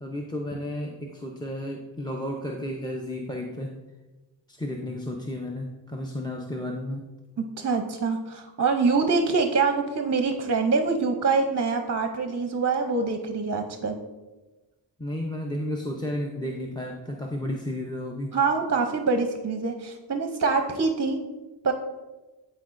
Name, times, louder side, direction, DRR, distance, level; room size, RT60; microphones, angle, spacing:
voice 1, 0.0-3.8 4.5-7.1 15.0-18.3, left 1 dB, 10° left, 1 dB, 0.5 m, -32 dB
voice 2, 7.4-14.0 18.3-21.2 21.6-21.7, right 4 dB, 35° right, 5 dB, 0.6 m, -25 dB
12.0 x 4.3 x 2.5 m, 1.1 s
wide cardioid pair, 85°, 48 cm